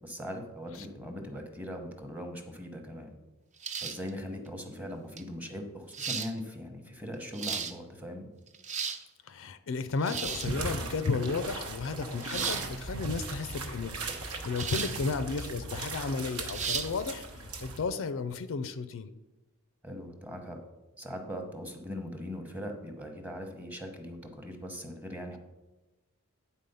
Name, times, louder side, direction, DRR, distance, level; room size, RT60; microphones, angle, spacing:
voice 1, 0.0-3.2 3.8-8.3 14.7-14.9 19.8-20.6 21.0-25.4, equal, 5° right, 4 dB, 0.9 m, -40 dB
sound 1, 3.6-4.1 5.2-5.3 5.9-6.3 7.1-7.7 8.5-9.0 10.0-10.5 12.2-12.7 14.6-15.0 15.4-15.5 16.5-16.9, right 6 dB, 35° right, 0.5 m, -34 dB
voice 2, 9.3-19.1, left 4 dB, 65° left, 11 dB, 0.4 m, -33 dB
sound 2, 10.2-17.8, right 3 dB, 75° right, 1.0 m, -38 dB
9.0 x 4.1 x 5.4 m, 1.1 s
head